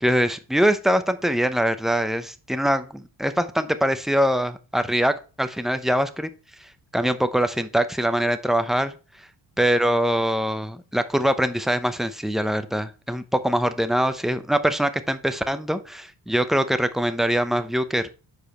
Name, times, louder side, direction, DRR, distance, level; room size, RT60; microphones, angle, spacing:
voice 1, 0.0-6.3 6.9-8.9 9.6-18.1, equal, ahead, 10 dB, 0.7 m, -23 dB
7.2 x 4.9 x 4.3 m, 0.33 s
cardioid pair, 80°, 44 cm